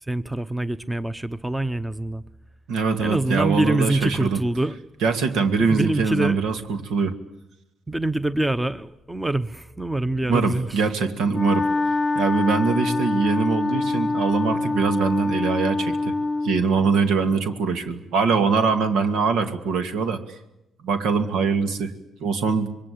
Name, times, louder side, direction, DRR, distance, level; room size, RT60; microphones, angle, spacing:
voice 1, 0.0-2.2 3.0-4.8 5.7-6.4 7.9-10.8, right 2 dB, 10° right, 13 dB, 0.9 m, -25 dB
voice 2, 2.7-4.4 5.0-7.2 10.3-11.7 12.2-16.1 16.4-20.2 20.8-21.9 22.2-22.7, right 5 dB, 85° right, 8 dB, 2.3 m, -23 dB
Wind instrument woodwind instrument, 11.3-16.7, left 3 dB, 30° left, 0.9 m, -25 dB
27.0 x 22.5 x 8.6 m, 0.91 s
cardioid pair, 90°, 0 cm